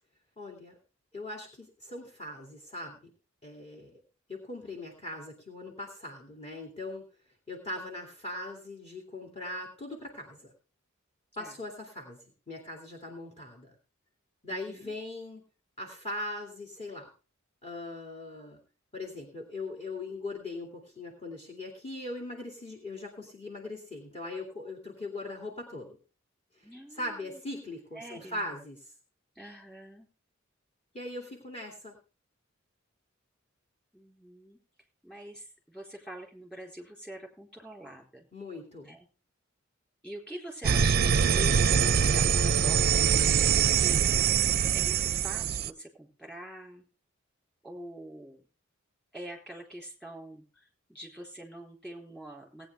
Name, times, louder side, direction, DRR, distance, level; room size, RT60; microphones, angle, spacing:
voice 1, 0.4-0.8 1.1-3.0 3.4-4.0 4.3-7.0 7.5-10.5 11.4-12.2 12.5-13.7 14.4-15.4 15.8-17.1 17.6-18.6 18.9-26.0 26.6-26.7 27.0-28.8 30.9-31.9 38.3-38.9, left 2 dB, 30° left, 0 dB, 2.6 m, -40 dB
voice 2, 14.5-14.9 26.6-27.4 27.9-28.5 29.4-30.1 33.9-34.6 35.0-38.3 38.8-39.1 40.0-44.0 44.7-46.8 47.6-48.4 49.1-52.7, right 1 dB, 5° left, 0 dB, 3.9 m, -45 dB
sound 1, 40.6-45.7, right 7 dB, 50° right, 0.5 m, -24 dB
18.5 x 9.2 x 3.5 m, 0.33 s
head